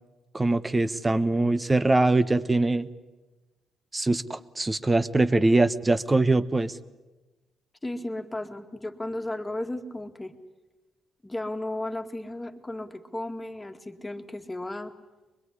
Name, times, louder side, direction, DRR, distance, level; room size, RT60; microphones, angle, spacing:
voice 1, 0.3-2.9 3.9-6.7, right 2 dB, 20° right, 13 dB, 1.2 m, -23 dB
voice 2, 7.8-10.3 11.2-14.9, left 1 dB, 15° left, 5 dB, 2.3 m, -34 dB
23.5 x 22.0 x 9.8 m, 1.1 s
cardioid pair, 90°, 0 cm